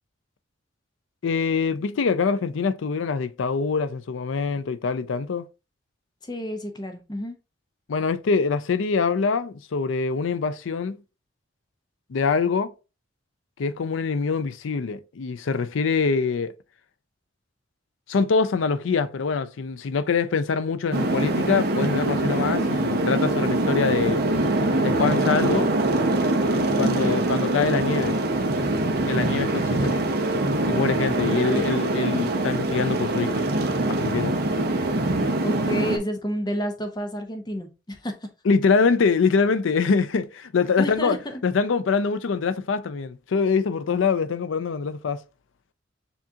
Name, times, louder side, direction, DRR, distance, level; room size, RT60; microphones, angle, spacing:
voice 1, 1.2-5.4 7.9-11.0 12.1-12.7 13.6-16.5 18.1-24.2 24.8-25.7 26.8-28.2 29.1-29.9 30.7-33.4 33.9-34.3 38.4-41.2 41.4-45.2, left 5 dB, 85° left, 0.5 m, -24 dB
voice 2, 6.2-7.4 26.8-27.2 31.5-31.6 35.4-38.3 40.8-41.4, equal, 20° left, 0.7 m, -30 dB
sound 1, 20.9-36.0, right 2 dB, 55° right, 0.7 m, -23 dB
7.0 x 2.4 x 2.8 m
head